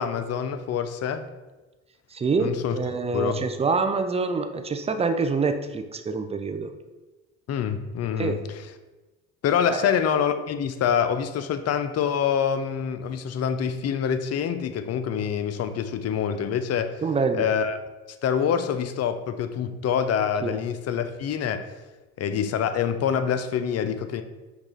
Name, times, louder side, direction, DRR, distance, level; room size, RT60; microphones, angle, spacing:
voice 1, 0.0-1.3 2.4-2.8 3.1-3.4 7.5-8.4 9.4-17.0 17.3-17.8 18.2-21.7 22.2-24.2, left 8 dB, 45° left, 10 dB, 0.5 m, -26 dB
voice 2, 2.1-6.7 8.2-8.4 9.7-9.9 17.0-17.5 20.4-20.6, right 4 dB, 20° right, 8 dB, 0.4 m, -26 dB
5.3 x 2.4 x 3.8 m, 1.2 s
hypercardioid pair, 60°, 36 cm